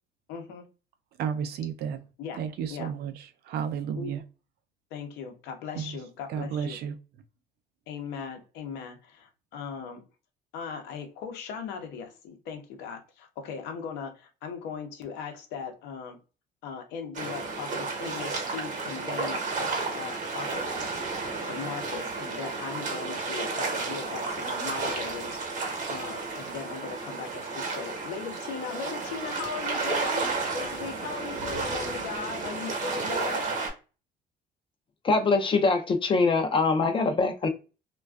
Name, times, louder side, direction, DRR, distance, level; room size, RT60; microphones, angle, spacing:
voice 1, 0.3-0.7 2.2-2.4 2.7-2.9 3.9-4.1 4.9-6.8 7.9-10.0 10.5-16.2 16.6-20.7 21.4-25.4 25.9-33.5, left 6 dB, 85° left, 0.7 m, -38 dB
voice 2, 1.2-2.0 2.3-4.2 5.7-7.0, right 7 dB, 70° right, 0.4 m, -33 dB
sound 1, 17.1-33.7, right 3 dB, 50° right, 0.9 m, -32 dB
voice 3, 35.0-37.5, left 3 dB, 30° left, 0.4 m, -23 dB
2.4 x 2.2 x 2.2 m
cardioid pair, 110°, 17 cm